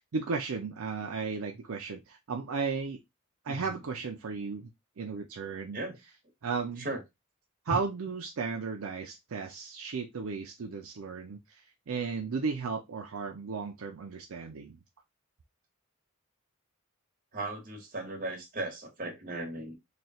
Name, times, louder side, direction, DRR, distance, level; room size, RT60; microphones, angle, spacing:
voice 1, 0.0-3.0 3.4-4.7 5.0-5.8 6.4-6.9 7.7-14.8, right 5 dB, 70° right, 0.5 m, -35 dB
voice 2, 3.5-3.8 5.7-6.0 6.8-7.0 7.7-7.8 17.3-19.7, right 2 dB, 35° right, 1.2 m, -37 dB
3.2 x 2.3 x 4.1 m
head